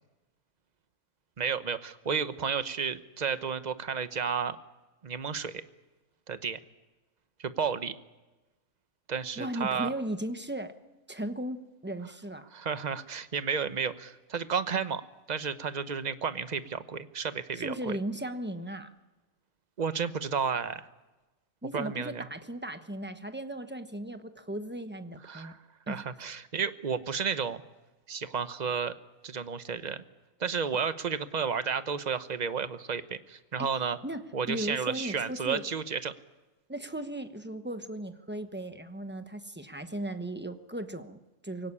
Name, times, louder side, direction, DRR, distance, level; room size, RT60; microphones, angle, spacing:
voice 1, 1.4-4.6 5.0-5.6 6.3-6.6 7.4-7.9 9.1-9.9 12.5-15.0 15.3-18.0 19.8-20.9 21.7-22.3 25.3-25.6 25.9-27.6 28.1-28.9 29.2-30.0 30.4-34.0 34.3-36.1, right 6 dB, 35° right, 12 dB, 0.9 m, -32 dB
voice 2, 9.4-10.7 11.1-12.5 17.5-18.9 21.6-25.5 25.9-26.0 33.6-35.6 36.7-41.7, right 1 dB, 10° right, 9 dB, 1.0 m, -37 dB
23.0 x 17.0 x 9.8 m, 1.1 s
omnidirectional pair, 1.5 m